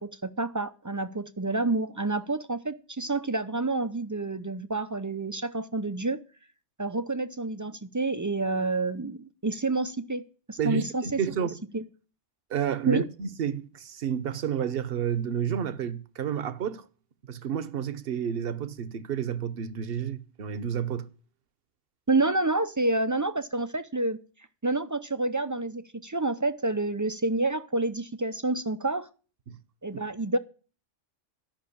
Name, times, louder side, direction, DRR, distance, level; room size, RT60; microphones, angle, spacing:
voice 1, 0.0-6.2 6.8-11.5 11.7-11.8 12.9-13.0 22.1-24.2 24.6-29.1 29.8-30.4, right 2 dB, 30° right, 0.3 m, -28 dB
voice 2, 10.6-11.6 12.5-16.8 17.3-21.1 29.5-29.6 29.9-30.0, right 8 dB, 55° right, 1.0 m, -30 dB
13.0 x 6.1 x 8.5 m
omnidirectional pair, 1.3 m